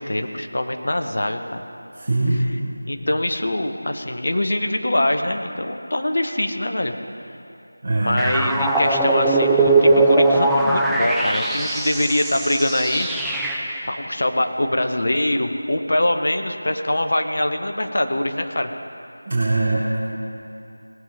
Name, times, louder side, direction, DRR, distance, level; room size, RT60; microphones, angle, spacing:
voice 1, 0.0-1.6 2.3-2.6 2.9-6.9 7.9-13.3 13.9-18.7, left 1 dB, 55° left, 5 dB, 1.0 m, -23 dB
voice 2, 2.0-2.4 7.8-8.2 19.3-20.0, right 2 dB, 35° right, -8 dB, 2.0 m, -21 dB
sound 1, 8.2-13.9, right 2 dB, ahead, 0.4 m, -20 dB
18.5 x 7.4 x 5.1 m, 2.7 s
figure-of-eight pair, 170°, 0 cm